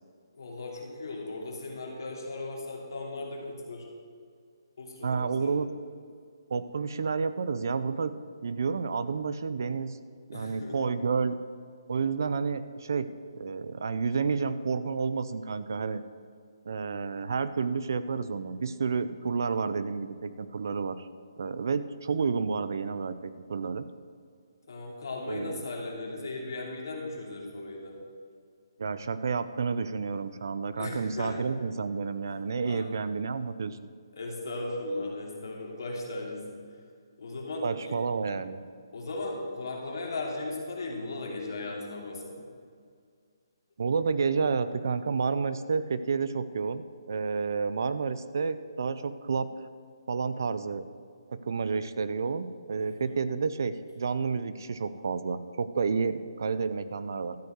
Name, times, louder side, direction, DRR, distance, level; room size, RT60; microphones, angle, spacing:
voice 1, 0.3-3.9 4.8-5.6 10.3-10.8 24.7-28.0 30.8-31.4 32.7-32.9 34.1-36.6 37.2-38.0 38.9-42.5 52.8-53.2, left 2 dB, 50° left, -1 dB, 2.7 m, -37 dB
voice 2, 5.0-5.7 6.5-8.1 8.4-10.0 10.3-11.4 11.9-13.1 13.3-16.0 16.7-21.1 21.4-23.9 25.3-25.6 28.8-33.8 37.6-38.6 43.8-49.5 50.1-50.8 51.3-57.4, right 5 dB, 45° right, 13 dB, 0.5 m, -30 dB
13.0 x 5.4 x 7.9 m, 2.1 s
hypercardioid pair, 180°, 2 cm